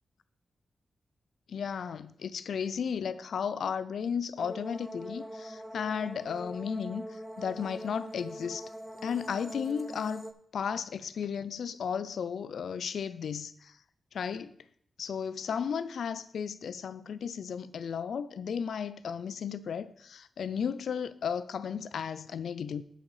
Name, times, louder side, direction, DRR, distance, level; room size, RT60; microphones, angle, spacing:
voice 1, 1.5-8.7 9.0-13.7 14.1-14.5 15.0-22.8, left 7 dB, 80° left, 0.3 m, -34 dB
sound 1, 4.4-10.3, equal, 10° right, 0.5 m, -43 dB
7.5 x 6.4 x 4.8 m
wide cardioid pair, 100°, 0 cm